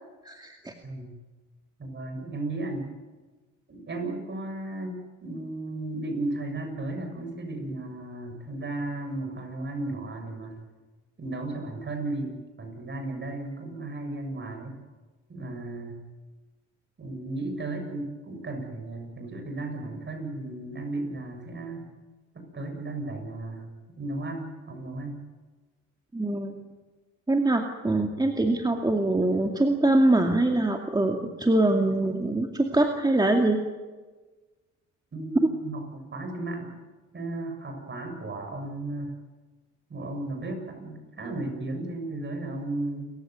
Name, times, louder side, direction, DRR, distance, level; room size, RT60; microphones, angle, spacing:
voice 1, 0.2-0.7 26.1-26.6 27.3-33.6, right 2 dB, 15° right, 3 dB, 2.3 m, -23 dB
voice 2, 1.8-2.9 3.7-10.6 11.2-14.8 15.3-16.0 17.0-21.9 22.3-23.7 24.0-25.2 35.1-36.7 37.1-39.1 39.9-43.1, right 2 dB, 35° right, 5 dB, 7.2 m, -34 dB
29.0 x 15.5 x 9.4 m, 1.3 s
cardioid pair, 90°, 30 cm